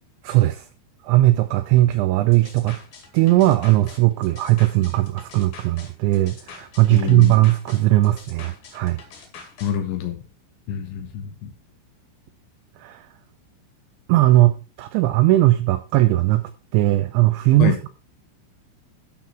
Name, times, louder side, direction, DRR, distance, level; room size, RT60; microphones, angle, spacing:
voice 1, 0.2-0.7 1.0-2.8 3.1-9.0 12.8-13.1 14.1-17.9, right 16 dB, 80° right, 9 dB, 2.7 m, -18 dB
sound 1, 2.3-9.7, left 5 dB, 55° left, 3.4 m, -44 dB
voice 2, 6.9-7.3 9.6-10.2 10.7-11.5 17.6-17.8, left 9 dB, 75° left, 6 dB, 3.2 m, -26 dB
12.5 x 5.8 x 4.4 m, 0.34 s
omnidirectional pair, 5.8 m